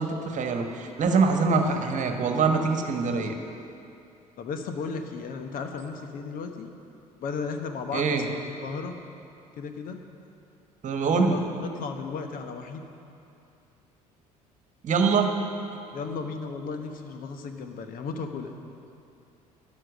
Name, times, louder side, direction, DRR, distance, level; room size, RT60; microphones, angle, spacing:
voice 1, 0.0-3.3 7.9-8.2 10.8-11.4 14.8-15.4, right 4 dB, 40° right, 4 dB, 1.4 m, -24 dB
voice 2, 4.4-6.7 7.2-8.4 8.6-8.9 9.6-10.0 11.1-12.8 15.9-18.5, left 5 dB, 50° left, 6 dB, 1.1 m, -35 dB
12.5 x 10.5 x 6.3 m, 2.7 s
figure-of-eight pair, 55°, 19 cm